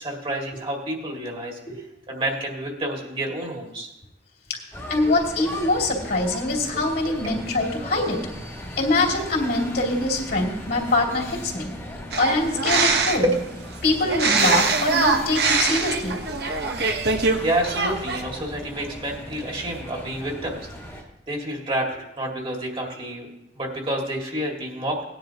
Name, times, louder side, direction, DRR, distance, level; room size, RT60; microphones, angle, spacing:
voice 1, 0.0-1.6 2.1-3.9 7.0-7.2 13.2-13.4 17.1-25.0, right 1 dB, 30° right, 0 dB, 2.1 m, -29 dB
sound 1, 4.7-21.0, left 1 dB, 15° left, 1.7 m, -38 dB
voice 2, 4.9-8.2 8.8-11.7 12.2-13.2 13.8-16.1, left 2 dB, 60° left, -1 dB, 2.8 m, -23 dB
sound 2, 12.1-13.4 14.1-17.4 17.6-18.2, right 4 dB, 65° right, 1.2 m, -22 dB
18.5 x 10.0 x 2.9 m, 0.89 s
head